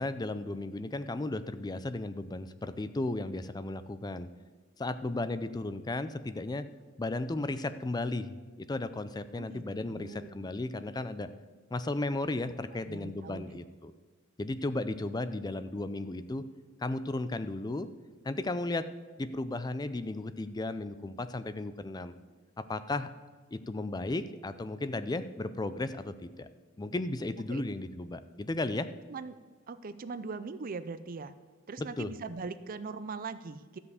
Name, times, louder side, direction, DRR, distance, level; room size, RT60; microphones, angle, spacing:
voice 1, 0.0-4.3 4.8-6.6 7.0-11.3 11.7-13.9 14.4-16.5 16.8-17.9 18.2-18.9 19.2-22.1 22.6-23.1 23.5-26.5 26.8-28.9 31.8-32.1, left 2 dB, 20° left, 12 dB, 0.4 m, -35 dB
voice 2, 9.3-10.4 12.9-13.6 27.5-27.6 29.1-29.4 29.7-31.3 31.7-33.8, right 4 dB, 45° right, 13 dB, 0.5 m, -41 dB
13.0 x 5.5 x 8.0 m, 1.4 s
head